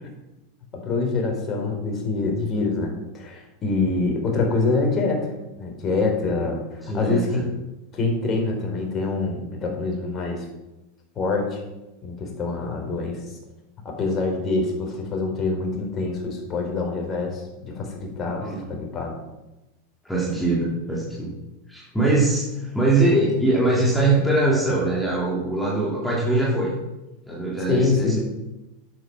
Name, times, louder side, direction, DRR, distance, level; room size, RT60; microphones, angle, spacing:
voice 1, 0.7-5.3 5.5-7.4 7.9-10.5 11.2-11.6 12.0-13.2 13.8-19.1 27.7-28.2, left 3 dB, 35° left, 2 dB, 4.3 m, -25 dB
voice 2, 6.8-7.4 18.4-18.6 20.0-21.4 21.7-26.7 27.3-28.2, right 2 dB, 5° left, -5 dB, 3.3 m, -22 dB
11.0 x 8.8 x 6.1 m, 1.0 s
hypercardioid pair, 90°, 0 cm